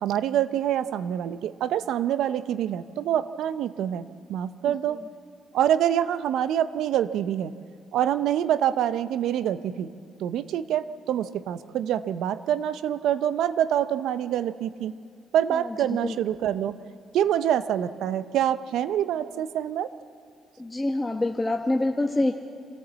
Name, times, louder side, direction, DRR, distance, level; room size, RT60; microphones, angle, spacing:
voice 1, 0.0-5.0 5.5-7.5 7.9-9.9 10.2-14.9 15.3-16.8 17.1-19.9, right 10 dB, 75° right, 14 dB, 0.6 m, -26 dB
voice 2, 20.6-22.3, left 2 dB, 15° left, 2 dB, 1.1 m, -25 dB
26.5 x 13.5 x 7.3 m, 2.2 s
supercardioid pair, 60°, 0 cm